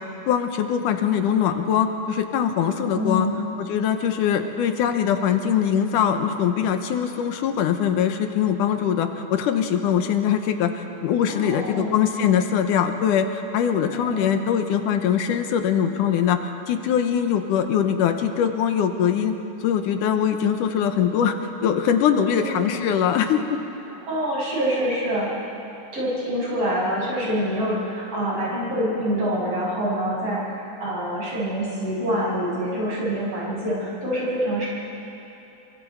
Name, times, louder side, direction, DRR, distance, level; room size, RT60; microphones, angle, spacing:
voice 1, 0.3-3.3 3.6-19.4 19.6-21.3 21.6-23.6, left 8 dB, 80° left, 7 dB, 2.5 m, -22 dB
voice 2, 2.9-3.4 11.3-11.9 13.9-14.3 22.3-22.8 24.1-25.3 25.9-34.7, equal, 45° right, -6 dB, 7.5 m, -26 dB
26.0 x 24.5 x 4.7 m, 3.0 s
omnidirectional pair, 3.7 m